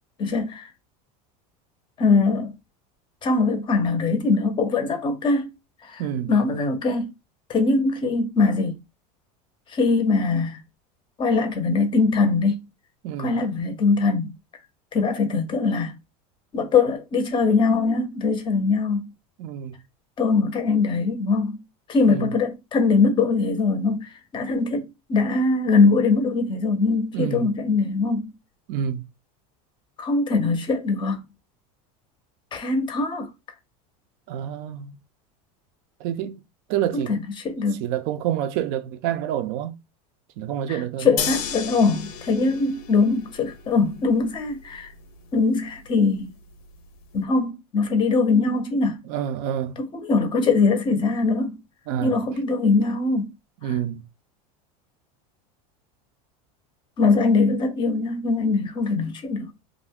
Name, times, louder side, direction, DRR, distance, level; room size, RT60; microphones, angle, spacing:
voice 1, 0.2-0.6 2.0-2.5 3.2-5.4 5.9-6.0 6.3-7.1 7.5-8.7 9.7-10.6 11.2-12.6 13.2-14.3 14.9-15.9 16.5-19.1 20.2-21.6 21.9-24.1 24.3-24.8 25.1-28.3 30.0-31.2 32.5-33.3 36.9-37.2 37.4-37.8 41.0-44.9 45.3-46.3 47.1-49.0 49.8-51.6 52.0-53.3 57.0-59.5, left 4 dB, 25° left, 0.6 m, -22 dB
voice 2, 6.0-6.3 13.0-13.4 19.4-19.8 22.1-22.3 27.1-27.5 28.7-29.0 34.3-35.0 36.0-36.4 36.7-37.2 37.8-39.8 40.4-41.3 49.0-49.8 51.9-52.2 53.6-54.0, right 10 dB, 55° right, 0.5 m, -28 dB
sound 1, 41.2-47.2, left 7 dB, 75° left, 0.6 m, -35 dB
2.4 x 2.1 x 3.4 m
supercardioid pair, 135°, 19 cm